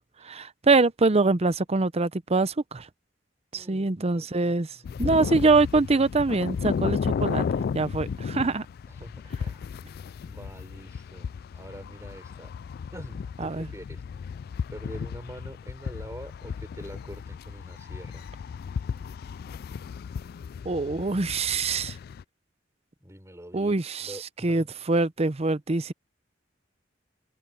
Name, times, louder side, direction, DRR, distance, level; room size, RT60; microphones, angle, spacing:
voice 1, 0.2-2.9 3.5-4.7 5.0-7.4 7.7-8.7 13.4-13.7 20.6-22.0 23.5-25.9, right 3 dB, 35° right, 0.7 m, -24 dB
voice 2, 3.5-5.3 8.9-9.1 9.4-9.6 10.2-11.3 11.5-12.5 12.9-14.0 14.7-18.3 23.0-23.7 24.0-24.6, right 1 dB, 15° right, 6.7 m, -44 dB
sound 1, 4.8-22.2, left 6 dB, 55° left, 0.3 m, -34 dB
head